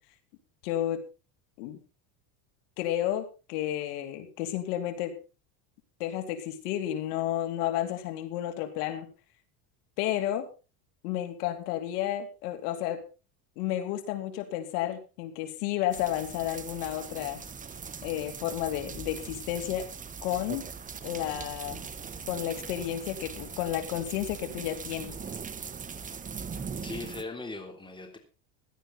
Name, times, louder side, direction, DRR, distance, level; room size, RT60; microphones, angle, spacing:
voice 1, 0.6-1.0 1.6-1.8 2.8-5.1 6.0-9.1 10.0-10.5 11.0-13.0 13.6-17.4 18.0-19.9 20.2-20.6 21.0-21.8 22.3-25.2, left 12 dB, 75° left, 7 dB, 3.0 m, -31 dB
sound 1, 15.9-27.2, right 6 dB, 15° right, 1.1 m, -40 dB
voice 2, 26.8-28.2, left 3 dB, 10° left, 4 dB, 3.3 m, -39 dB
16.5 x 12.0 x 4.2 m, 0.34 s
supercardioid pair, 140°, 46 cm